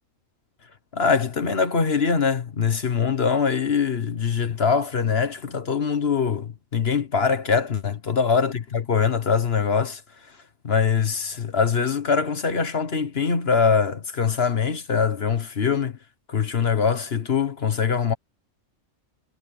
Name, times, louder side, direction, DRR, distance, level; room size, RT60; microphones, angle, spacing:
voice 1, 0.9-10.0 10.6-16.0 16.3-18.1, left 6 dB, 50° left, 1.5 m, -23 dB
omnidirectional pair, 1.4 m